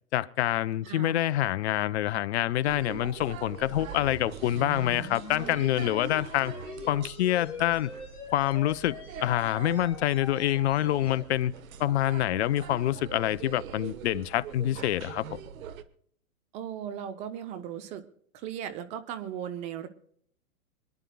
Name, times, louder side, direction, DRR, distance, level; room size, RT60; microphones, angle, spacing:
voice 1, 0.1-6.5 6.9-7.9 8.3-9.0 9.2-11.5 11.8-15.4, left 13 dB, 45° left, 0.7 m, -26 dB
voice 2, 0.8-1.2 16.5-18.0 18.3-19.9, right 9 dB, 15° right, 0.5 m, -37 dB
sound 1, 2.6-15.8, right 8 dB, 65° right, 1.2 m, -43 dB
sound 2, 3.5-11.3, left 4 dB, 10° left, 3.4 m, -44 dB
26.5 x 10.5 x 2.2 m
hypercardioid pair, 135°, 45 cm